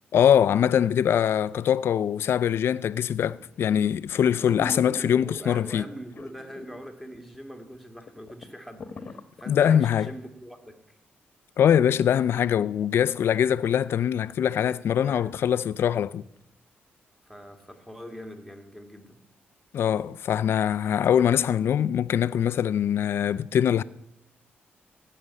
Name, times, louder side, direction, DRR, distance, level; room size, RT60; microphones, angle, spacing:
voice 1, 0.1-5.8 9.5-10.1 11.6-16.2 19.7-23.8, left 9 dB, 65° left, 0.4 m, -23 dB
sound 1, 3.3-3.7 4.1-4.2 4.5-5.5 6.2-6.9 7.2-7.3 7.7-7.8 8.1-9.9 10.4-10.5, left 3 dB, 45° left, 1.1 m, -40 dB
voice 2, 4.2-11.0 14.6-15.3 17.2-19.2, equal, 5° right, 2.0 m, -43 dB
16.0 x 6.6 x 8.3 m
cardioid pair, 95°, 4 cm